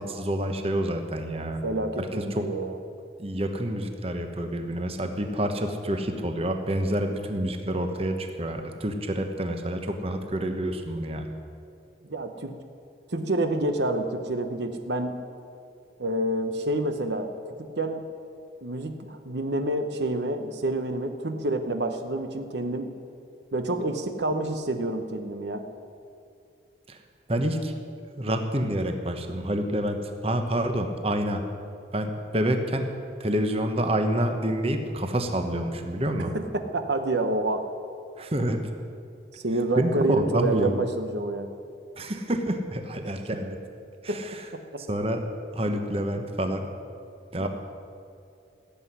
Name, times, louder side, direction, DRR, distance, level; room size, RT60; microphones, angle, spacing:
voice 1, 0.0-1.6 2.0-2.5 3.2-11.3 26.9-27.0 27.3-27.7 28.2-31.4 31.9-32.9 33.2-36.3 38.2-38.6 39.8-40.8 42.0-43.6 44.0-44.4 44.8-45.2 45.5-46.6 47.3-47.5, right 1 dB, 30° right, 5 dB, 1.1 m, -28 dB
voice 2, 1.6-2.7 12.1-12.6 13.1-15.2 16.0-17.3 17.6-18.1 18.6-22.9 23.5-25.6 36.3-37.7 39.3-41.5 44.1-44.2 44.5-44.8 47.4-47.5, right 2 dB, 65° right, 7 dB, 0.9 m, -28 dB
15.5 x 8.0 x 9.9 m, 2.5 s
head